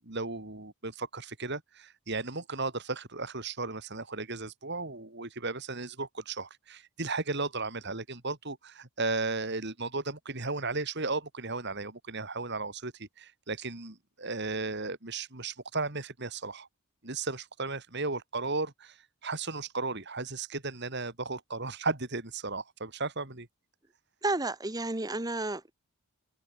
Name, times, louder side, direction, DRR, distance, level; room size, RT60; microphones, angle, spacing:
voice 1, 0.0-16.7 17.0-23.5, right 3 dB, 50° right, 3.4 m, -35 dB
voice 2, 24.2-25.7, right 2 dB, 15° right, 1.3 m, -31 dB
head